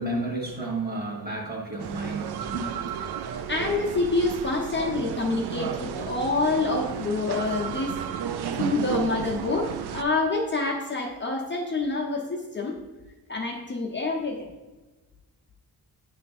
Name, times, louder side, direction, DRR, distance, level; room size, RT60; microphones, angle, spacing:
voice 1, 0.0-2.8, right 2 dB, 25° right, -2 dB, 1.6 m, -31 dB
sound 1, 1.8-10.0, right 8 dB, 80° right, 0.5 m, -33 dB
voice 2, 3.5-7.9 8.5-12.7 13.3-14.5, left 3 dB, 30° left, -2 dB, 0.8 m, -27 dB
9.6 x 3.3 x 4.2 m, 1.2 s
wide cardioid pair, 165°, 38 cm